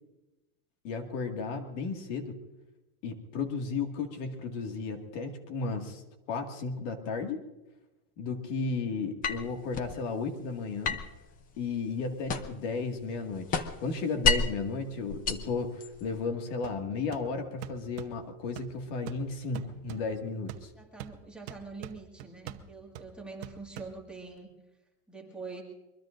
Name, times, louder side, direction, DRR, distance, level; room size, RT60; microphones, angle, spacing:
voice 1, 0.8-2.4 3.0-6.0 6.3-7.4 8.2-11.0 11.6-20.7, left 4 dB, 55° left, 4 dB, 2.1 m, -34 dB
sound 1, 9.2-10.0 10.8-12.7 13.0-14.6 15.1-16.2, left 5 dB, 20° left, 0.6 m, -31 dB
sound 2, 16.6-24.4, right 10 dB, 50° right, 1.0 m, -47 dB
voice 2, 20.8-24.5 25.1-25.6, right 3 dB, ahead, -2 dB, 2.0 m, -44 dB
23.0 x 23.0 x 2.6 m, 1.0 s
supercardioid pair, 155°, 44 cm